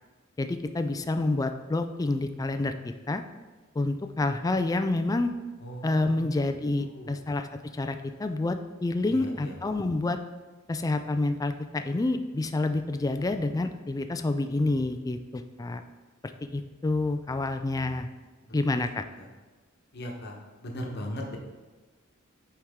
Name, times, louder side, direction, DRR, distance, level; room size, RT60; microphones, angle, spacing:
voice 1, 0.4-3.2 3.8-5.3 5.8-7.5 7.7-10.2 10.7-15.8 16.5-18.1 18.5-19.0, left 2 dB, 15° left, 8 dB, 0.3 m, -28 dB
voice 2, 5.6-6.2 6.8-7.1 9.0-9.5 18.4-18.8 19.2-19.3 19.9-20.4 20.6-21.4, equal, 55° left, 1 dB, 1.1 m, -39 dB
7.5 x 4.6 x 3.6 m, 1.3 s
head